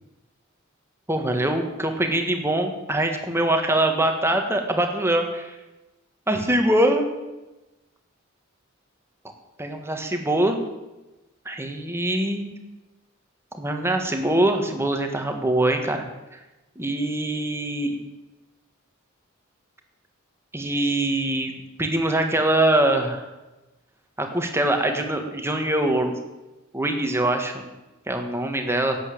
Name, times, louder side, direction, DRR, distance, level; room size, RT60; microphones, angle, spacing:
voice 1, 1.1-5.6 6.3-7.0 9.6-10.6 11.4-12.5 13.5-16.1 16.7-18.0 20.5-21.5 21.8-23.3 24.2-26.1 26.7-27.7 28.1-29.0, right 1 dB, 15° right, 4 dB, 1.6 m, -23 dB
11.0 x 8.4 x 8.4 m, 1.1 s
head